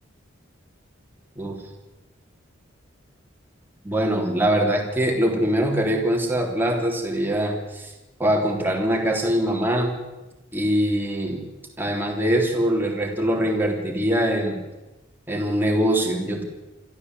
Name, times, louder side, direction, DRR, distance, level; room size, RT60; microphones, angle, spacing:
voice 1, 3.8-7.9 8.2-9.9 10.5-11.4 11.8-14.6 15.3-16.4, right 1 dB, 10° right, 1 dB, 3.5 m, -23 dB
26.0 x 13.5 x 8.1 m, 1.1 s
head